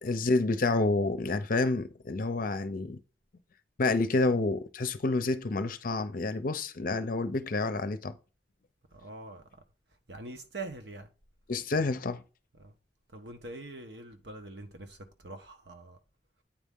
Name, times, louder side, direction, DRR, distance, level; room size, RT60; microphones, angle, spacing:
voice 1, 0.0-3.0 3.8-8.2 11.5-12.2, left 3 dB, 50° left, 0.6 m, -29 dB
voice 2, 8.9-9.6 10.1-11.1 12.6-12.7 13.1-16.0, right 2 dB, 70° right, 1.1 m, -44 dB
8.8 x 4.1 x 3.7 m
head